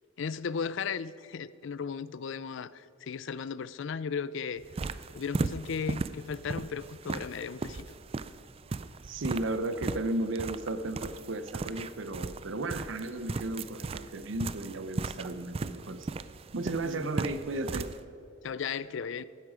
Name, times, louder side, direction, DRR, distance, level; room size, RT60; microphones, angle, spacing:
voice 1, 0.2-4.6 5.1-7.9 16.8-17.1 18.4-19.2, left 6 dB, 65° left, 17 dB, 0.4 m, -36 dB
sound 1, 4.6-18.0, right 3 dB, 30° right, 0.3 m, -37 dB
voice 2, 9.0-16.1 16.5-17.9, right 2 dB, 65° right, 10 dB, 0.6 m, -34 dB
15.0 x 12.5 x 5.0 m, 2.7 s
head